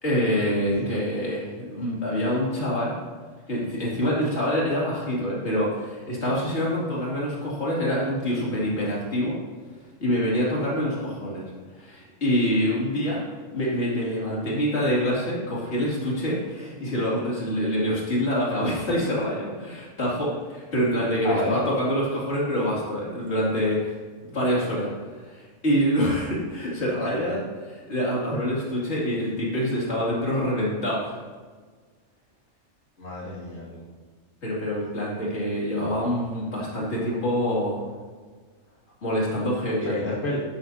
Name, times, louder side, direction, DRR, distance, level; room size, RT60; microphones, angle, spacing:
voice 1, 0.0-3.0 3.5-9.4 10.0-11.5 11.7-13.2 13.5-24.0 24.2-24.9 25.2-31.2 34.4-37.8 39.0-40.0, equal, 55° left, -5 dB, 3.0 m, -26 dB
voice 2, 21.2-21.6 27.0-27.4 33.0-33.8 35.8-36.0 39.8-40.4, left 1 dB, 80° left, -8 dB, 2.5 m, -30 dB
12.0 x 10.5 x 2.8 m, 1.5 s
omnidirectional pair, 1.3 m